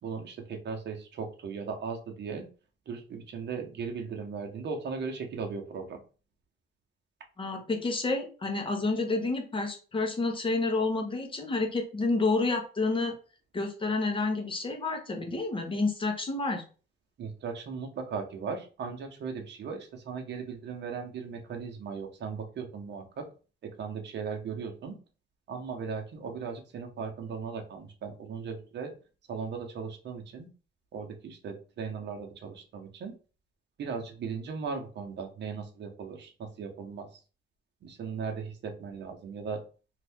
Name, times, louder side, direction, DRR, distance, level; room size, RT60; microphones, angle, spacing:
voice 1, 0.0-2.5 2.9-6.0 17.2-23.3 23.6-25.0 25.5-28.9 29.3-30.5 30.9-33.1 33.8-37.1 37.8-39.6, right 5 dB, 60° right, 3 dB, 0.9 m, -37 dB
voice 2, 7.4-13.1 13.5-16.6, left 3 dB, 25° left, 3 dB, 0.9 m, -29 dB
2.7 x 2.5 x 3.5 m, 0.36 s
cardioid pair, 90°, 20 cm